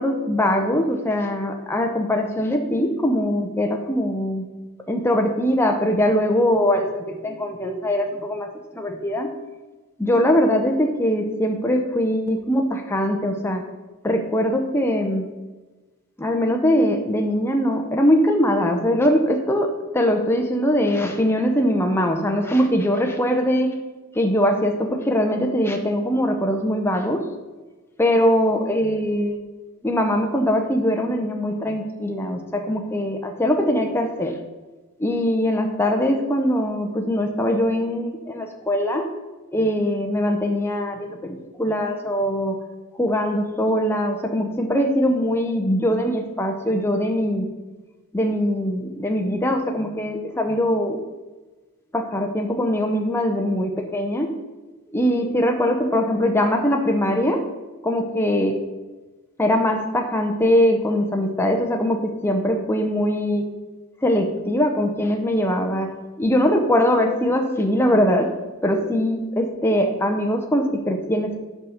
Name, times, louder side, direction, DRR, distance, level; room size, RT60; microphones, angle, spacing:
voice 1, 0.0-4.5 4.9-9.3 10.0-13.6 14.0-15.3 16.2-23.7 24.1-27.2 28.0-29.4 29.8-34.3 35.0-39.1 39.5-42.6 42.9-47.5 48.1-51.0 51.9-54.3 54.9-57.4 57.8-58.6 59.4-63.4 64.0-65.9 66.2-68.3 68.6-71.4, equal, 10° left, 3 dB, 0.8 m, -21 dB
8.7 x 5.1 x 6.4 m, 1.2 s
head